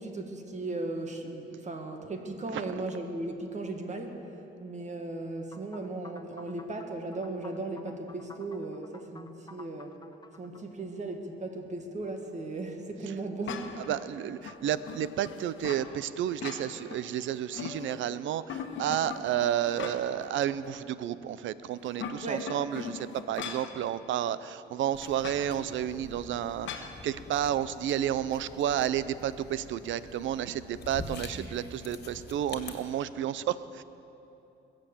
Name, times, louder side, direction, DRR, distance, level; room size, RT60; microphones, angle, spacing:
voice 1, 0.0-4.2 4.6-10.0 10.4-13.7 22.2-22.4 31.3-31.5, right 2 dB, 35° right, 4 dB, 1.9 m, -37 dB
voice 2, 2.5-2.9 13.0-13.2 13.8-33.8, right 10 dB, 75° right, 16 dB, 0.6 m, -31 dB
sound 1, 5.5-10.6, left 3 dB, 20° left, 0.9 m, -52 dB
sound 2, 13.5-13.9 14.4-15.9 16.3-17.0 17.3-18.1 18.5-20.3 20.6-20.7 21.8-23.7 25.2-25.5 26.7-27.0, left 7 dB, 70° left, 1.2 m, -40 dB
sound 3, 24.9-32.7, left 4 dB, 55° left, 1.9 m, -46 dB
22.0 x 7.7 x 7.2 m, 2.9 s
cardioid pair, 90°, 20 cm